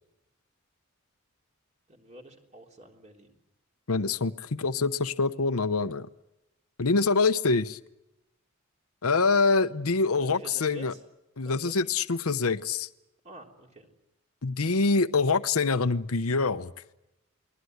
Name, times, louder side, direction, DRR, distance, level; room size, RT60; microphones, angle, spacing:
voice 1, 1.9-3.3 9.3-9.5 10.2-11.0 11.4-11.8 13.2-13.9, right 1 dB, 30° right, 2 dB, 3.6 m, -48 dB
voice 2, 3.9-6.1 6.8-7.8 9.0-10.9 11.4-12.9 14.4-16.7, left 4 dB, 75° left, 12 dB, 0.9 m, -25 dB
29.0 x 21.0 x 8.0 m, 0.92 s
head